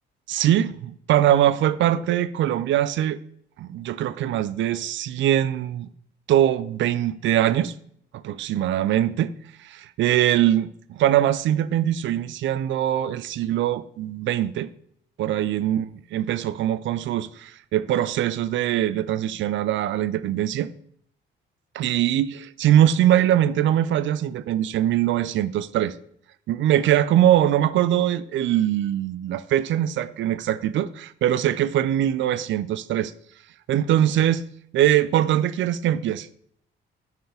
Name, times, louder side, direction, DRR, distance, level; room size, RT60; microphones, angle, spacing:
voice 1, 0.3-3.2 3.6-5.9 6.3-7.8 8.2-14.7 15.2-20.7 21.7-25.9 26.5-33.1 33.7-34.5 34.7-36.3, right 11 dB, 75° right, 0.5 m, -22 dB
9.2 x 4.8 x 3.4 m
cardioid pair, 90°, 20 cm